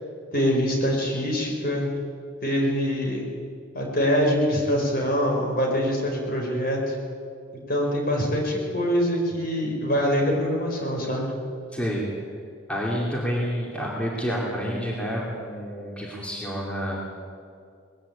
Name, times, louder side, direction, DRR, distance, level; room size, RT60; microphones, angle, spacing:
voice 1, 0.3-1.9 2.4-3.3 3.7-6.9 7.7-11.3, equal, 45° left, 0 dB, 4.3 m, -24 dB
voice 2, 11.7-12.3 12.7-17.0, equal, 5° left, -4 dB, 2.7 m, -29 dB
19.5 x 16.0 x 8.6 m, 2.3 s
head